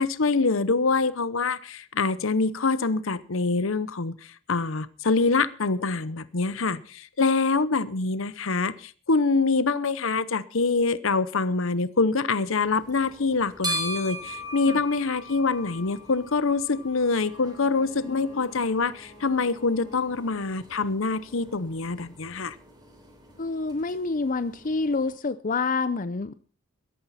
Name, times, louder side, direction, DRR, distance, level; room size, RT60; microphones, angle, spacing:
voice 1, 0.0-22.6, left 4 dB, 65° left, 15 dB, 0.8 m, -25 dB
sound 1, 12.6-25.2, equal, 20° right, 3.5 m, -40 dB
Wind instrument woodwind instrument, 16.9-20.7, equal, 75° right, 4.5 m, -52 dB
voice 2, 18.0-18.4 23.4-26.3, left 3 dB, 40° left, 13 dB, 0.6 m, -28 dB
17.5 x 13.0 x 4.2 m, 0.38 s
head